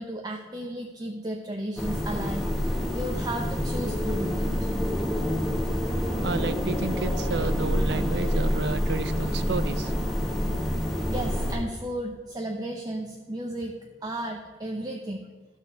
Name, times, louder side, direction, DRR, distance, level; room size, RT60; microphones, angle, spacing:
voice 1, 0.0-4.7 10.8-15.3, right 1 dB, 20° right, 2 dB, 0.6 m, -34 dB
sound 1, 1.8-11.5, equal, ahead, 1.2 m, -27 dB
voice 2, 6.2-9.9, right 3 dB, 65° right, 14 dB, 0.5 m, -31 dB
12.5 x 4.4 x 6.7 m, 1.4 s
head